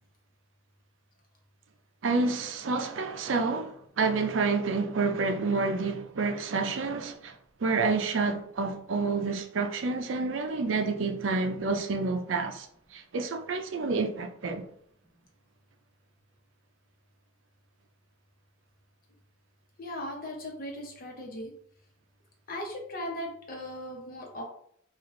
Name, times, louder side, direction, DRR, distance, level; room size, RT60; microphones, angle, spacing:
voice 1, 2.0-7.3 7.6-12.7 12.9-14.6, right 4 dB, 70° right, 0.5 m, -29 dB
voice 2, 19.8-21.5 22.5-24.4, left 1 dB, 50° left, 1.0 m, -38 dB
3.3 x 2.5 x 3.8 m
head